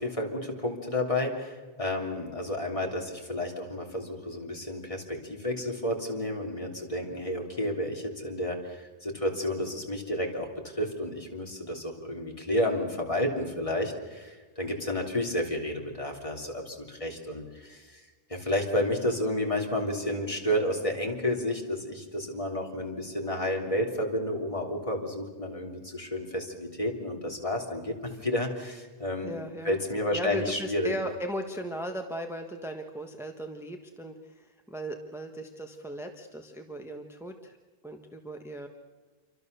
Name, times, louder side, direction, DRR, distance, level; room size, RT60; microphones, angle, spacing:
voice 1, 0.0-18.0 18.3-29.3 29.7-30.9, left 1 dB, 35° left, 1 dB, 3.4 m, -31 dB
voice 2, 29.2-29.8 30.1-37.6 37.8-38.7, equal, 5° right, 4 dB, 1.3 m, -37 dB
28.0 x 24.0 x 6.9 m, 1.3 s
omnidirectional pair, 1.0 m